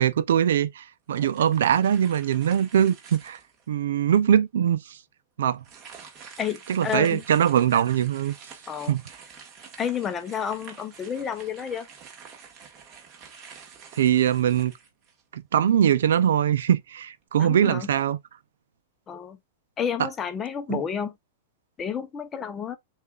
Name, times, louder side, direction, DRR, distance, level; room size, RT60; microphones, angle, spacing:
voice 1, 0.0-3.4 3.7-5.0 5.4-5.6 6.7-8.3 8.9-9.0 14.0-14.7 15.3-18.2 20.7-20.8, right 9 dB, 80° right, 0.5 m, -22 dB
sound 1, 1.1-3.7 4.2-4.3 5.6-15.4, right 6 dB, 30° right, 1.4 m, -48 dB
voice 2, 6.4-7.2 8.7-8.9 9.8-11.9 17.4-17.9 19.1-19.4 19.8-21.1 21.8-22.8, left 8 dB, 20° left, 0.7 m, -30 dB
6.7 x 2.5 x 2.4 m
hypercardioid pair, 145°, 0 cm